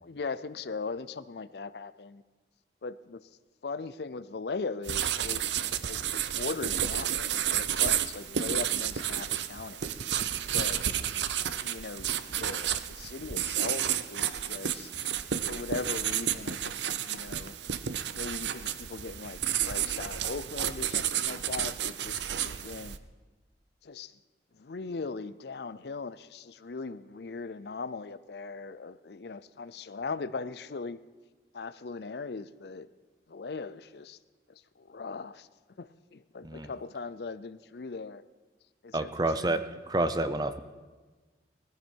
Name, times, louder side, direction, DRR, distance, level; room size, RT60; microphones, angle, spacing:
voice 1, 0.0-2.2 2.8-3.2 3.6-5.4 5.9-9.9 10.5-10.8 11.6-15.1 15.5-16.8 17.1-17.5 18.1-23.0 23.8-24.1 24.6-31.0 31.5-32.9 33.3-34.2 34.8-35.5 35.8-38.2 38.8-39.1 39.4-39.6, left 4 dB, 65° left, 15 dB, 0.5 m, -39 dB
sound 1, 4.8-23.0, right 10 dB, 80° right, 0.6 m, -31 dB
voice 2, 38.9-40.6, right 2 dB, 20° right, 11 dB, 0.6 m, -29 dB
20.0 x 15.0 x 4.5 m, 1.3 s
head